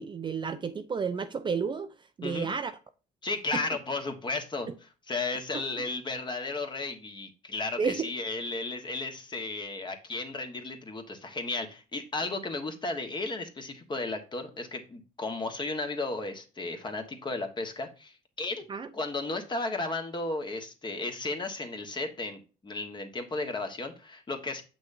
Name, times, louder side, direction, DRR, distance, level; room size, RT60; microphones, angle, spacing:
voice 1, 0.0-1.9 2.2-2.7 3.5-3.6 7.8-8.1 18.7-18.9, right 5 dB, 30° right, 0.5 m, -31 dB
voice 2, 3.2-4.7 5.1-18.6 18.9-24.6, left 3 dB, 25° left, 1.4 m, -34 dB
7.3 x 6.1 x 2.7 m
cardioid pair, 110°, 17 cm